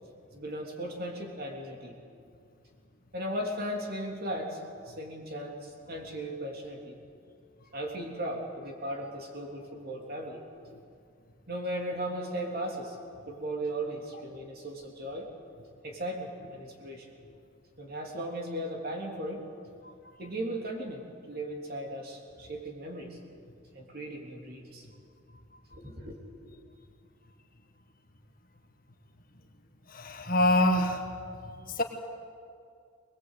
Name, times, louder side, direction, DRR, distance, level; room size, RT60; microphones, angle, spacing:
voice 1, 0.3-2.0 3.1-4.6 4.8-7.0 7.7-10.4 11.5-13.0 13.3-15.3 15.8-17.1 17.8-19.4 20.2-21.0 21.3-23.2 23.7-24.9 25.7-26.1, right 1 dB, 45° right, 1 dB, 3.3 m, -37 dB
voice 2, 29.9-31.1 31.7-31.8, left 1 dB, 40° left, 3 dB, 1.7 m, -25 dB
21.0 x 21.0 x 8.3 m, 2.3 s
head